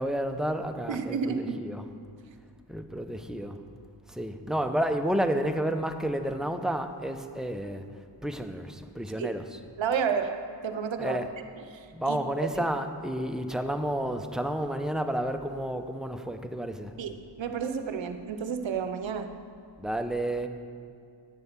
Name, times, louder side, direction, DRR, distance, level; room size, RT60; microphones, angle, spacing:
voice 1, 0.0-1.9 2.7-3.6 4.1-7.8 8.2-9.6 11.0-11.3 11.9-16.9 19.8-20.5, right 1 dB, ahead, 6 dB, 0.7 m, -31 dB
voice 2, 0.9-1.6 9.2-9.3 9.8-11.2 12.1-12.7 17.0-19.4, right 6 dB, 90° right, 8 dB, 0.7 m, -31 dB
10.0 x 7.8 x 5.9 m, 2.2 s
cardioid pair, 50°, 44 cm